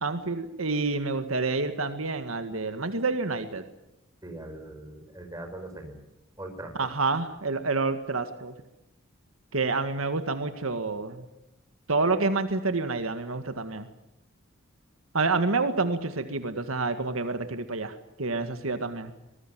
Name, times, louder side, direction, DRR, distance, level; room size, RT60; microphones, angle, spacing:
voice 1, 0.0-3.6 6.8-8.5 9.5-11.3 11.9-13.9 15.1-19.1, right 3 dB, 80° right, 9 dB, 1.9 m, -28 dB
voice 2, 4.2-6.0 6.4-6.9, right 1 dB, 15° right, 5 dB, 5.7 m, -41 dB
24.5 x 19.5 x 9.2 m, 0.92 s
head